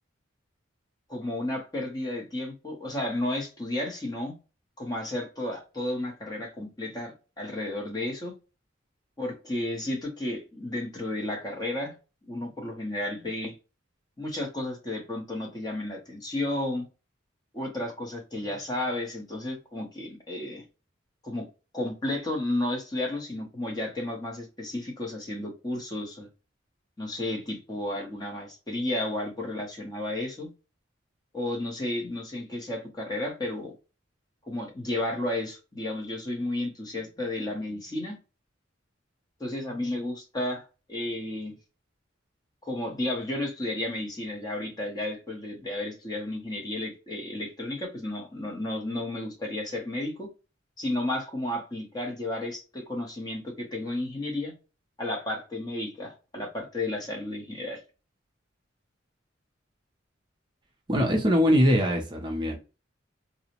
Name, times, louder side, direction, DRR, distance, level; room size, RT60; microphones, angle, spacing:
voice 1, 1.1-4.3 4.8-8.3 9.2-11.9 12.3-13.5 14.2-16.9 17.5-20.6 21.2-21.5 21.7-26.3 27.0-30.5 31.3-33.7 34.5-38.2 39.4-41.6 42.6-50.3 50.8-54.5 55.0-57.8, left 1 dB, 20° left, 0.7 m, -32 dB
voice 2, 60.9-62.6, equal, 25° right, 0.5 m, -22 dB
2.6 x 2.0 x 2.9 m
head